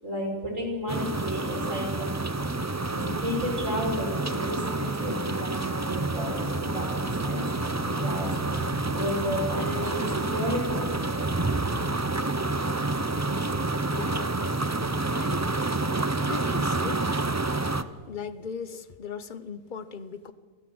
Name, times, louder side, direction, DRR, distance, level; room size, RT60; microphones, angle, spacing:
voice 1, 0.0-2.2 2.9-11.2, equal, 65° right, 0 dB, 6.1 m, -32 dB
sound 1, 0.9-17.8, right 2 dB, 20° right, 0.4 m, -28 dB
sound 2, 5.8-11.1, left 2 dB, 65° left, 3.5 m, -46 dB
voice 2, 13.9-14.6 15.2-15.5 16.3-17.1 18.1-20.3, left 6 dB, 40° left, 13 dB, 0.9 m, -38 dB
27.0 x 16.0 x 7.9 m, 1.5 s
omnidirectional pair, 1.5 m